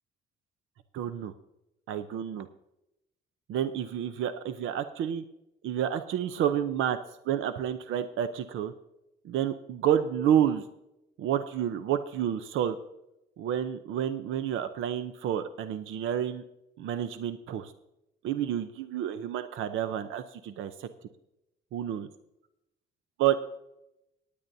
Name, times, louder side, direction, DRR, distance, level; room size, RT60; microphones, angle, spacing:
voice 1, 0.9-1.3 1.9-2.5 3.5-5.2 5.6-7.0 7.3-8.7 9.2-10.6 11.2-12.8 13.4-16.4 16.8-17.7 18.2-20.9 21.7-22.1 23.2-23.4, right 10 dB, 80° right, 10 dB, 0.7 m, -29 dB
18.0 x 10.0 x 2.7 m, 0.87 s
cardioid pair, 90°, 20 cm